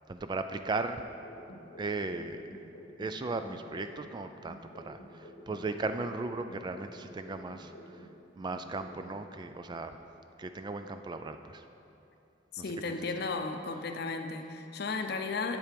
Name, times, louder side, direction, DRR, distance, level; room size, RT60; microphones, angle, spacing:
voice 1, 0.1-1.0 1.8-2.5 3.0-8.1 8.3-10.0 10.4-11.6 12.6-13.1, right 3 dB, 25° right, 8 dB, 0.3 m, -37 dB
sound 1, 1.2-4.2 4.5-8.2 8.5-9.2, equal, 85° left, 1.1 m, -50 dB
voice 2, 12.5-15.6, left 4 dB, 60° left, 6 dB, 0.6 m, -34 dB
8.2 x 7.4 x 5.1 m, 2.9 s
head